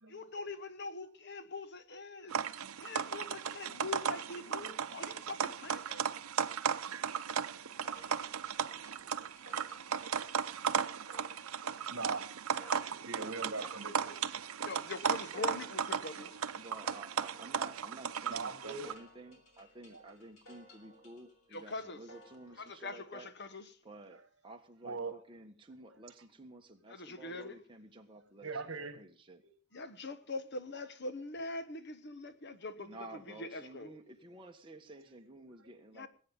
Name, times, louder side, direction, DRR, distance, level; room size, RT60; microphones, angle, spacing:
voice 1, 0.1-2.4 2.8-6.0 14.6-16.4 21.5-22.0 22.6-23.7 26.9-27.6 29.7-33.9 35.9-36.1, left 3 dB, 50° left, 1.1 m, -43 dB
sound 1, 2.3-18.9, right 7 dB, 85° right, 0.7 m, -36 dB
sound 2, 7.8-22.8, left 1 dB, 75° left, 3.5 m, -60 dB
voice 2, 9.0-9.6 11.6-12.3 12.6-14.2 18.3-18.9 19.9-20.0 24.8-25.2 28.4-29.0 29.4-29.5, right 3 dB, 65° right, 1.7 m, -42 dB
voice 3, 16.6-23.3 23.8-29.4 32.8-36.1, right 2 dB, 25° right, 1.6 m, -52 dB
20.0 x 8.8 x 5.5 m
head